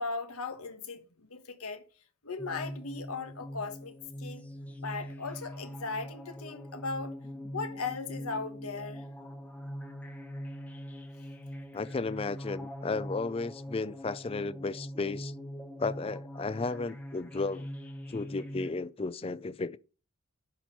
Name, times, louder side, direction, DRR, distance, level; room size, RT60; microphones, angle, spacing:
voice 1, 0.0-1.8 2.2-4.5 4.8-7.1 7.5-9.1, left 4 dB, 85° left, 1.4 m, -38 dB
sound 1, 2.4-18.7, equal, 5° left, 0.8 m, -42 dB
voice 2, 11.7-15.3 15.8-17.7 18.1-19.8, left 3 dB, 25° left, 0.3 m, -34 dB
10.5 x 4.4 x 5.4 m
head